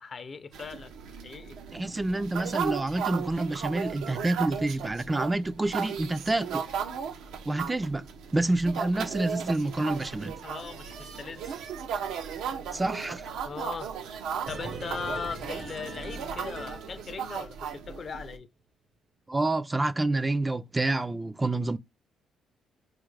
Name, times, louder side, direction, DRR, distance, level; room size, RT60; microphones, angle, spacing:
voice 1, 0.0-1.6 10.4-11.6 13.4-13.9 14.5-18.5, left 5 dB, 45° left, 0.5 m, -39 dB
sound 1, 0.5-18.4, right 7 dB, 85° right, 0.6 m, -36 dB
voice 2, 1.7-6.6 7.5-8.1 8.3-10.3 12.7-13.3 19.3-21.8, right 2 dB, 20° right, 0.3 m, -28 dB
sound 2, 14.5-17.6 17.9-18.0, right 3 dB, 70° right, 1.0 m, -41 dB
4.4 x 2.4 x 3.2 m
cardioid pair, 90°, 0 cm